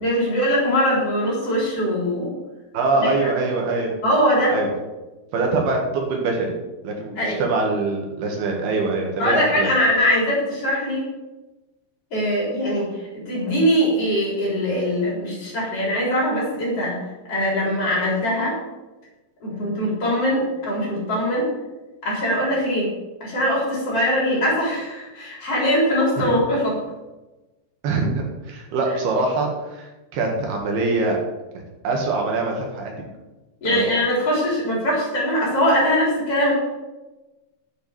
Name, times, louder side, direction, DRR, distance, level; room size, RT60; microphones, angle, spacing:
voice 1, 0.0-2.3 2.9-3.1 4.0-4.6 7.2-7.4 9.2-11.0 12.1-12.9 13.1-17.0 17.3-18.6 19.4-21.5 22.0-22.9 23.2-26.8 33.6-36.5, equal, 35° left, -4 dB, 4.7 m, -21 dB
voice 2, 2.7-4.0 4.5-4.7 5.3-6.5 6.8-9.7 26.2-26.3 27.8-31.2 31.8-33.1 33.7-33.8, right 3 dB, 75° right, 1 dB, 3.8 m, -23 dB
8.7 x 8.0 x 7.2 m, 1.1 s
omnidirectional pair, 4.6 m